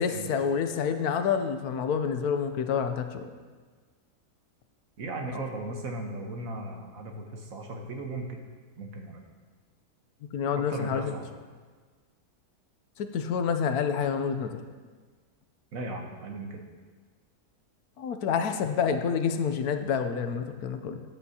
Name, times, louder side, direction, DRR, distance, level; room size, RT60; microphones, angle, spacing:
voice 1, 0.0-3.3 10.3-11.1 13.0-14.6 18.0-21.0, left 6 dB, 75° left, 8 dB, 1.2 m, -28 dB
voice 2, 5.0-8.4 8.8-9.2 10.6-11.3 15.7-16.6, right 2 dB, 65° right, 2 dB, 1.4 m, -37 dB
12.5 x 9.3 x 2.8 m, 1.5 s
omnidirectional pair, 1.6 m